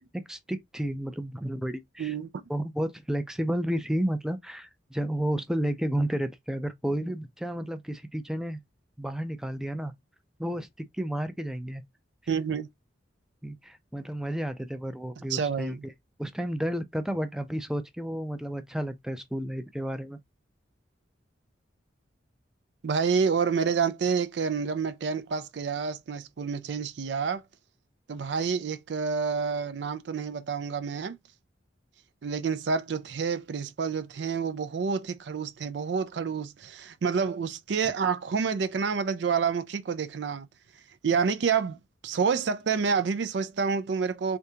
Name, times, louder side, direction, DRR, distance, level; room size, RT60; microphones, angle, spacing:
voice 1, 0.1-2.1 2.5-8.6 9.0-9.9 10.4-11.8 13.4-15.9 16.2-20.2, right 1 dB, 5° right, 0.4 m, -31 dB
voice 2, 2.0-2.3 12.3-12.7 15.3-15.8 22.8-27.4 28.1-31.2 32.2-40.5 41.0-41.8 42.0-44.4, right 5 dB, 65° right, 0.4 m, -28 dB
3.6 x 3.5 x 2.7 m
head